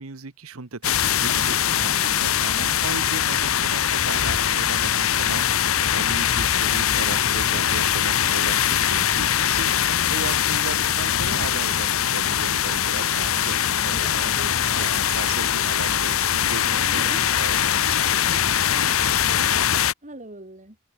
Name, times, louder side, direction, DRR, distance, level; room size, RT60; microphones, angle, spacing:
voice 1, 0.0-17.7, right 4 dB, 80° right, 1.2 m, -36 dB
sound 1, 0.8-19.9, left 9 dB, 75° left, 1.0 m, -22 dB
voice 2, 13.4-14.9 15.9-16.0 16.7-17.3 18.0-19.0 19.3-19.5 20.0-20.8, right 1 dB, 35° right, 5.5 m, -42 dB
head